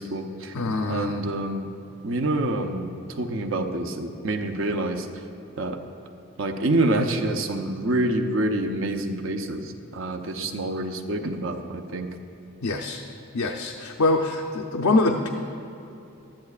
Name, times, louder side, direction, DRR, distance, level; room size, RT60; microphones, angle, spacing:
voice 1, 0.0-0.5 0.9-1.7 2.0-2.9 3.2-5.1 5.6-5.8 6.4-12.1, right 2 dB, 60° right, 6 dB, 0.7 m, -27 dB
voice 2, 0.5-1.3 12.6-13.0 13.3-15.3, left 2 dB, 85° left, 1 dB, 0.6 m, -24 dB
15.0 x 11.5 x 2.4 m, 2.9 s
head